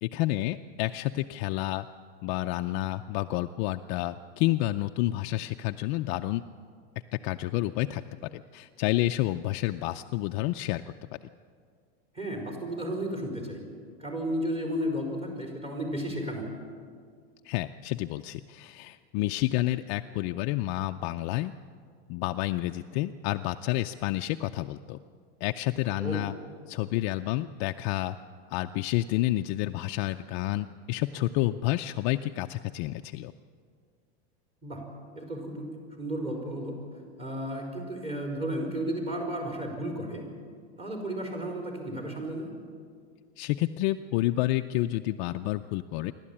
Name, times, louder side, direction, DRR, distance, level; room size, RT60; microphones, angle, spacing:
voice 1, 0.0-1.9 2.2-6.4 7.1-10.8 17.4-21.5 22.1-25.0 25.4-26.3 26.7-28.2 28.5-33.3 43.4-46.1, left 16 dB, 50° left, 6 dB, 0.5 m, -29 dB
voice 2, 12.1-13.6 14.0-16.5 26.0-26.2 34.6-34.8 35.1-35.7 36.0-36.8 37.2-40.2 40.8-42.5, right 1 dB, 20° right, 2 dB, 4.8 m, -33 dB
27.5 x 12.5 x 8.7 m, 2.1 s
supercardioid pair, 145°, 32 cm